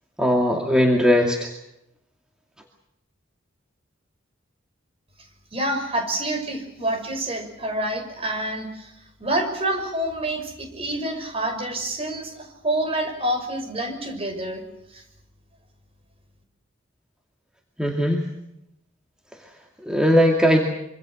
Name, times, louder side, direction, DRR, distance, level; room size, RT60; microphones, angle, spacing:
voice 1, 0.2-1.5 17.8-18.3 19.9-20.7, equal, 5° right, 1 dB, 2.4 m, -19 dB
voice 2, 5.5-8.9 9.2-14.6 14.9-15.0, right 1 dB, 30° right, 5 dB, 5.8 m, -27 dB
26.0 x 25.5 x 6.4 m, 0.83 s
head